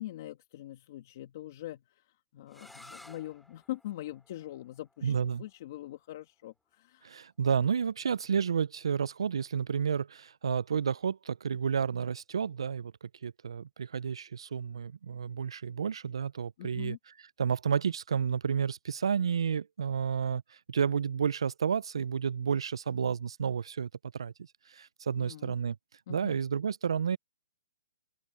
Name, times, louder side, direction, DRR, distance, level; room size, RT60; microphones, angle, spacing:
voice 1, 0.0-7.1 16.6-17.0 25.2-25.5 26.1-26.4, left 14 dB, 40° left, 1.7 m, -43 dB
sound 1, 2.5-8.2, left 1 dB, ahead, 2.6 m, -58 dB
voice 2, 5.0-5.4 7.0-17.0 17.4-24.3 24.7-25.8 26.1-27.2, right 7 dB, 80° right, 0.4 m, -31 dB
open air
hypercardioid pair, 165°, 3 cm